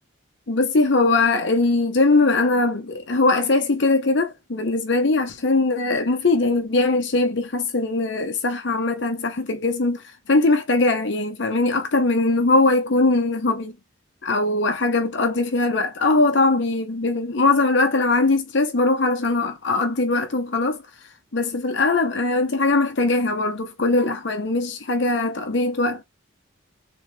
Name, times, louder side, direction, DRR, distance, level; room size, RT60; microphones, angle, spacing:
voice 1, 0.5-13.7 14.2-20.8 21.3-26.0, left 2 dB, 60° left, 0.8 m, -21 dB
3.8 x 3.5 x 3.2 m
head